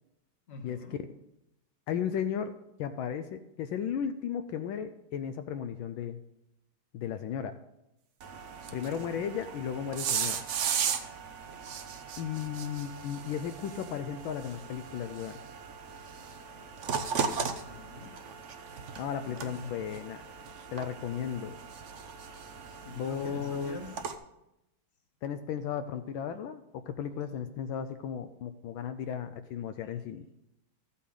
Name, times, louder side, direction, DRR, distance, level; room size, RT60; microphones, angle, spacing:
voice 1, 0.5-1.0 8.7-9.2 17.3-18.1 19.2-19.8 22.7-23.9 29.8-29.9, left 4 dB, 35° left, 4 dB, 1.4 m, -45 dB
voice 2, 1.9-2.5 2.8-6.2 6.9-7.6 8.7-10.4 12.2-15.4 19.0-20.2 20.7-21.6 23.0-23.8 25.2-30.3, left 8 dB, 80° left, 9 dB, 1.3 m, -35 dB
sound 1, 8.2-24.1, right 6 dB, 70° right, 0.7 m, -37 dB
14.0 x 8.3 x 3.8 m, 0.87 s
omnidirectional pair, 2.2 m